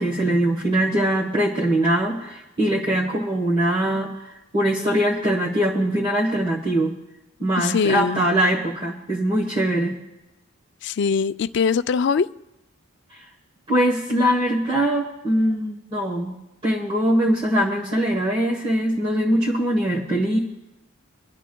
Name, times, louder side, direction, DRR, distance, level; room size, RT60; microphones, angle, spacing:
voice 1, 0.0-6.9 7.4-10.0 13.1-13.2 13.7-16.3 16.6-20.4, right 1 dB, 25° right, -4 dB, 1.2 m, -22 dB
voice 2, 7.6-8.2 10.8-12.3, left 5 dB, 55° left, 13 dB, 0.3 m, -22 dB
22.5 x 11.0 x 2.3 m, 0.94 s
head